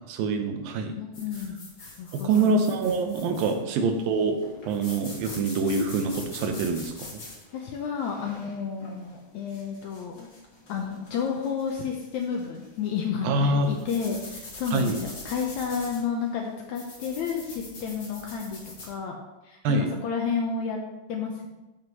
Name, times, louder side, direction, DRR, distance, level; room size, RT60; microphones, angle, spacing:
voice 1, 0.1-1.0 2.1-4.4 4.6-6.9 13.2-13.7 14.7-15.0 19.6-19.9, right 3 dB, 85° right, 5 dB, 2.6 m, -25 dB
voice 2, 1.0-2.6 3.5-3.6 7.5-10.3 10.7-19.2 19.4-20.8 21.1-21.5, left 6 dB, 75° left, 1 dB, 1.8 m, -31 dB
sound 1, 1.1-18.9, left 2 dB, 45° left, 1.1 m, -45 dB
13.0 x 5.3 x 3.0 m, 1.0 s
omnidirectional pair, 4.0 m